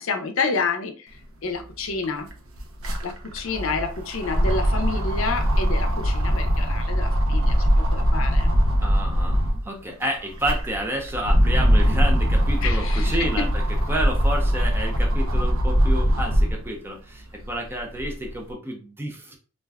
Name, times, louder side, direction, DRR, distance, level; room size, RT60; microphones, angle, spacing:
voice 1, 0.0-2.3 3.0-8.5 12.6-13.5, left 4 dB, 75° left, 6 dB, 0.5 m, -29 dB
sound 1, 1.5-1.6 1.9-9.7 10.2-16.7 17.2-18.3, equal, 80° right, 0.6 m, -21 dB
voice 2, 8.8-13.6 13.9-19.4, right 1 dB, 10° right, 1 dB, 0.5 m, -30 dB
2.5 x 2.2 x 3.4 m, 0.36 s
head